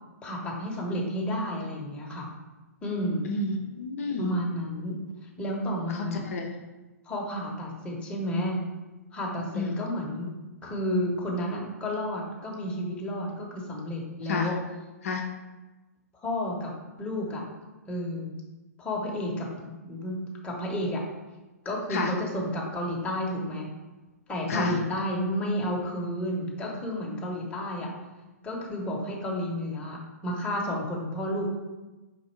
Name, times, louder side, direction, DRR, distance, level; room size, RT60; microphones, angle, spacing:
voice 1, 0.2-2.3 2.8-3.3 4.2-4.9 5.4-6.2 7.0-8.6 9.1-10.3 10.6-14.5 16.1-16.7 17.0-17.4 17.9-18.3 18.8-19.5 19.9-20.2 20.4-21.0 21.6-23.7 24.3-27.9 28.4-31.5, equal, 10° left, -3 dB, 0.9 m, -31 dB
voice 2, 3.3-4.3 5.9-6.6 9.5-9.9 14.2-14.5 15.0-15.2 21.9-22.1 24.5-24.8, left 3 dB, 60° left, 2 dB, 0.6 m, -30 dB
4.1 x 2.6 x 4.4 m, 1.1 s
figure-of-eight pair, 125°, 9 cm